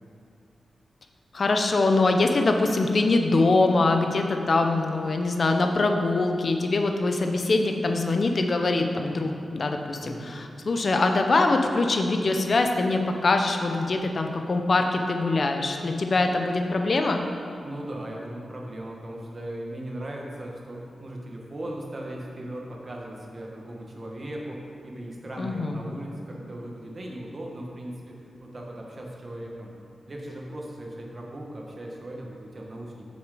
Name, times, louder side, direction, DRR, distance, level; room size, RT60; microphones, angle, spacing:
voice 1, 1.3-17.2 25.4-25.8, left 3 dB, 55° left, 4 dB, 0.7 m, -23 dB
voice 2, 10.0-10.3 17.6-29.7 30.1-33.1, right 1 dB, 40° right, -1 dB, 1.4 m, -38 dB
7.3 x 6.2 x 5.0 m, 2.4 s
cardioid pair, 75°, 0 cm